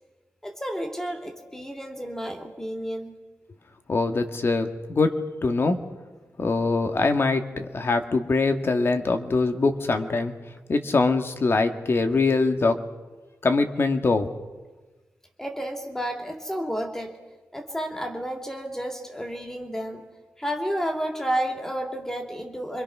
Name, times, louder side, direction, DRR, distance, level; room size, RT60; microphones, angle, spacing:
voice 1, 0.4-3.2 15.4-17.1 17.5-20.1 20.4-22.8, equal, 10° left, 3 dB, 3.0 m, -31 dB
voice 2, 3.9-5.8 6.4-10.3 10.7-12.8 13.4-14.3, left 3 dB, 45° left, 6 dB, 1.9 m, -23 dB
27.5 x 25.0 x 6.1 m, 1.2 s
wide cardioid pair, 145°, 6 cm